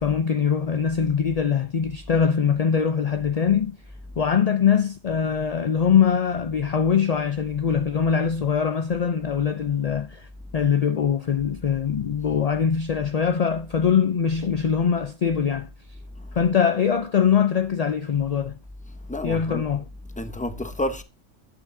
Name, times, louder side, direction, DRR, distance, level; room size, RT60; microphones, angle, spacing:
voice 1, 0.0-3.8 4.2-10.3 10.5-15.7 16.3-18.6 19.2-19.8, left 7 dB, 55° left, 0.4 m, -22 dB
voice 2, 19.1-19.7 20.2-21.0, left 1 dB, 5° left, 0.8 m, -29 dB
11.5 x 9.0 x 2.6 m
omnidirectional pair, 1.3 m